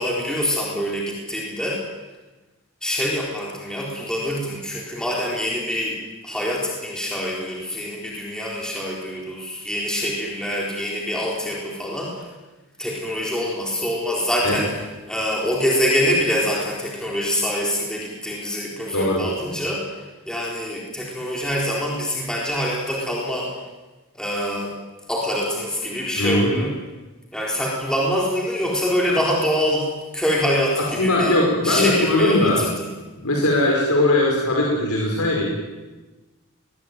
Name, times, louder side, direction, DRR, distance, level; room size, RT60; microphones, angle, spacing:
voice 1, 0.0-1.8 2.8-6.0 6.2-12.3 12.8-14.7 15.1-19.9 20.3-23.5 24.1-24.7 25.1-26.7 27.3-32.9, equal, 5° left, -3 dB, 4.1 m, -25 dB
voice 2, 18.9-19.2 26.2-26.7 29.1-29.2 30.8-32.6 33.2-35.4, left 1 dB, 85° left, -1 dB, 5.1 m, -20 dB
21.0 x 20.5 x 9.3 m, 1.2 s
head